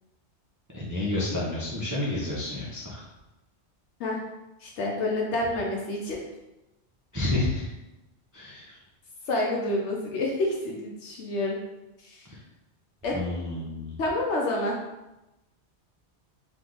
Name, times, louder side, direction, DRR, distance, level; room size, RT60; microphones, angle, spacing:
voice 1, 0.7-3.0 7.1-7.7 8.3-8.7 13.1-14.0, left 2 dB, 20° right, -6 dB, 0.6 m, -30 dB
voice 2, 4.6-6.2 9.3-11.6 12.0-12.3 13.0-13.2 14.0-14.8, left 2 dB, 80° left, -1 dB, 1.0 m, -28 dB
3.3 x 3.2 x 3.8 m, 0.98 s
omnidirectional pair, 1.2 m